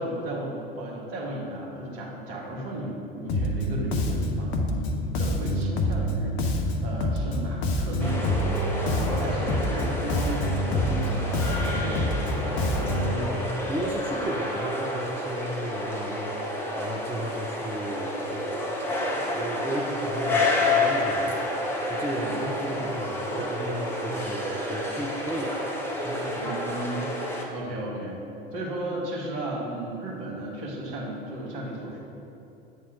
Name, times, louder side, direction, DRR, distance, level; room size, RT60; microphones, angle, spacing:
voice 1, 0.0-4.9 5.2-8.4 8.7-13.2 22.2-22.9 26.4-27.1 27.5-28.2 28.5-32.0, right 1 dB, 50° right, -3 dB, 1.7 m, -35 dB
Bass guitar, 3.3-13.2, left 1 dB, 45° left, 0.7 m, -27 dB
sound 1, 8.0-27.5, left 1 dB, 10° left, 1.0 m, -30 dB
voice 2, 12.5-16.5 16.8-25.6 26.0-26.5, right 1 dB, 10° right, 1 dB, 0.3 m, -34 dB
8.3 x 3.6 x 5.2 m, 2.8 s
figure-of-eight pair, 75°, 30 cm